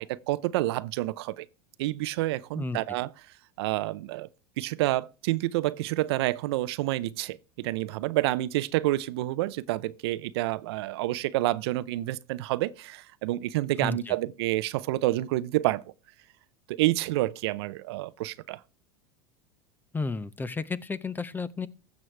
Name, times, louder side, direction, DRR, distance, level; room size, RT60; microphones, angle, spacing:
voice 1, 0.0-1.5 1.8-3.1 3.6-4.3 4.6-15.8 16.8-18.6, right 17 dB, 75° right, 0.6 m, -28 dB
voice 2, 13.8-14.1 19.9-21.7, left 4 dB, 15° left, 0.7 m, -32 dB
15.5 x 6.3 x 3.3 m
hypercardioid pair, 105°, 14 cm